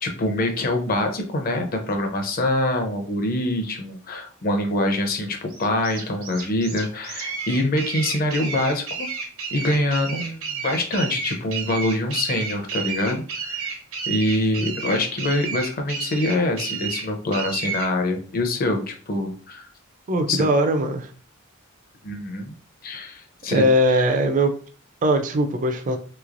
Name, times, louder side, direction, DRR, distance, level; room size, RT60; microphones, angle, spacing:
voice 1, 0.0-9.1 9.5-13.7 14.1-19.7 20.3-20.5 22.0-22.5 22.8-23.6, left 1 dB, 45° left, 5 dB, 0.7 m, -25 dB
sound 1, 5.5-17.9, right 6 dB, 85° right, 1.0 m, -31 dB
voice 2, 20.1-21.1 23.5-24.5 25.0-26.0, right 1 dB, 40° right, 6 dB, 0.4 m, -20 dB
3.2 x 3.1 x 2.5 m, 0.42 s
head